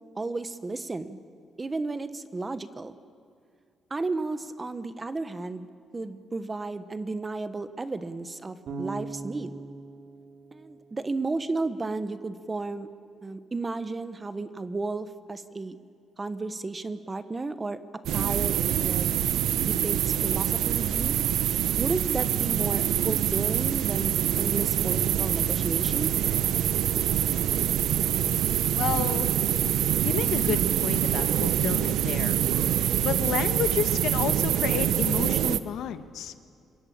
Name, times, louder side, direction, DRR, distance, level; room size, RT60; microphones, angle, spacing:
voice 1, 0.2-1.2 1.6-2.9 3.9-5.7 5.9-9.5 10.5-12.9 13.2-15.8 16.2-17.8 18.1-19.1 19.6-21.2 21.8-26.1, right 3 dB, 20° right, 12 dB, 1.1 m, -33 dB
Bass guitar, 8.7-11.7, right 3 dB, 55° right, 3.4 m, -40 dB
sound 1, 18.1-35.6, right 10 dB, 85° right, 0.8 m, -25 dB
voice 2, 28.8-29.3 30.0-32.4 33.0-36.3, left 9 dB, 85° left, 10 dB, 1.3 m, -31 dB
26.5 x 22.5 x 8.7 m, 2.4 s
cardioid pair, 140°, 0 cm